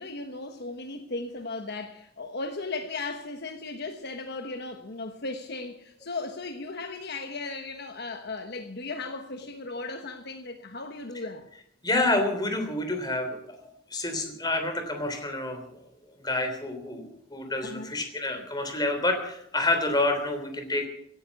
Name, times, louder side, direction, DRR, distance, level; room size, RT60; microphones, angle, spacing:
voice 1, 0.0-11.5 17.6-17.9, left 3 dB, 55° left, 1.2 m, -36 dB
voice 2, 11.8-13.6 13.9-15.7 16.2-20.9, left 2 dB, 20° left, 3.3 m, -28 dB
17.0 x 9.9 x 8.2 m
head